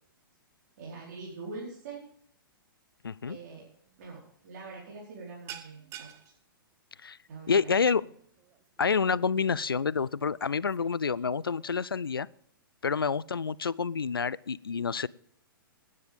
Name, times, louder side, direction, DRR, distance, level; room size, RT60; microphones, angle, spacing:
voice 1, 0.8-2.0 3.2-3.7 4.0-6.1 7.3-7.7, right 3 dB, 50° right, -5 dB, 4.6 m, -43 dB
voice 2, 3.0-3.4 7.0-7.2 7.5-8.0 8.8-12.3 12.8-15.1, left 5 dB, 80° left, 22 dB, 0.5 m, -28 dB
sound 1, 3.8-4.1 4.4-4.7 4.9-11.8, right 10 dB, 25° right, 1.1 m, -51 dB
18.0 x 9.7 x 3.6 m, 0.68 s
figure-of-eight pair, 115°, 12 cm